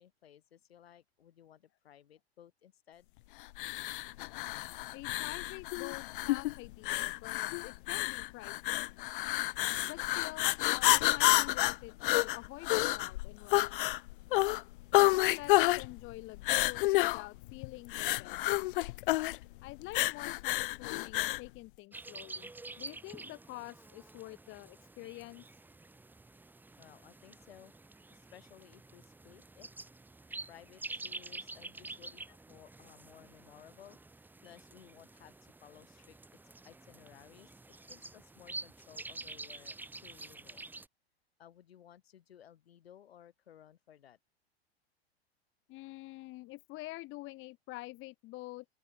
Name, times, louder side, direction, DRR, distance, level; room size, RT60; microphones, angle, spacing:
voice 1, 0.0-3.1 26.8-27.7 28.1-29.7 30.5-36.2 36.6-37.5 37.9-40.6 41.4-44.2, left 10 dB, 75° left, 4.6 m, -58 dB
sound 1, 3.5-21.5, left 19 dB, 55° left, 0.5 m, -30 dB
voice 2, 4.9-8.9 9.8-14.0 15.0-18.4 19.6-22.5 22.8-25.4 45.7-48.6, left 19 dB, 40° left, 1.2 m, -47 dB
sound 2, 21.9-40.9, right 2 dB, 5° right, 0.8 m, -48 dB
open air
figure-of-eight pair, 90°, 31 cm